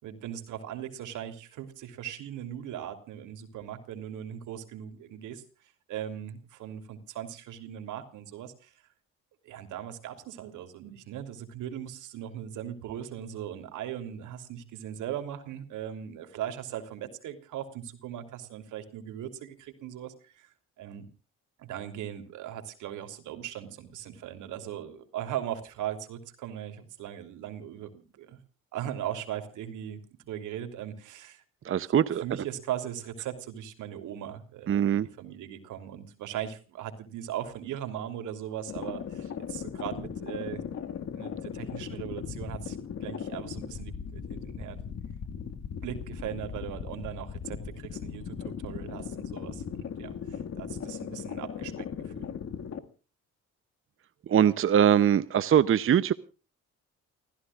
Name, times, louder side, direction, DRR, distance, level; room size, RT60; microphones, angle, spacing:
voice 1, 0.0-5.4 5.9-8.7 9.4-20.5 20.8-21.0 21.6-28.4 28.7-30.0 30.3-31.4 32.2-40.6 41.0-42.8 43.0-44.8 45.5-52.3, right 10 dB, 90° right, 8 dB, 3.2 m, -39 dB
voice 2, 31.6-32.2 34.7-35.1 54.3-56.1, right 9 dB, 45° right, 15 dB, 0.7 m, -22 dB
sound 1, 38.7-52.8, left 7 dB, 55° left, 2.0 m, -38 dB
29.5 x 15.0 x 2.4 m, 0.35 s
cardioid pair, 90°, 30 cm